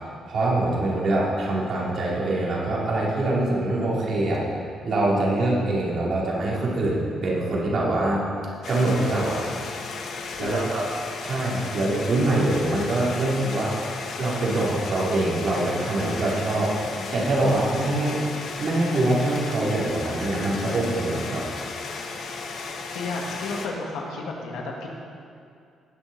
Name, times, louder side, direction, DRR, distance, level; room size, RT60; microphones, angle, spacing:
voice 1, 0.3-4.4 4.8-8.3 8.7-9.5 10.4-10.8 11.2-13.8 14.2-16.7 17.1-18.2 18.6-21.4, right 2 dB, 55° right, -5 dB, 2.9 m, -24 dB
sound 1, 8.6-23.7, left 4 dB, 70° left, 1.2 m, -35 dB
voice 2, 10.4-10.7 22.9-24.9, left 3 dB, 90° left, -1 dB, 1.9 m, -32 dB
18.5 x 6.5 x 4.1 m, 2.3 s
cardioid pair, 90°, 0 cm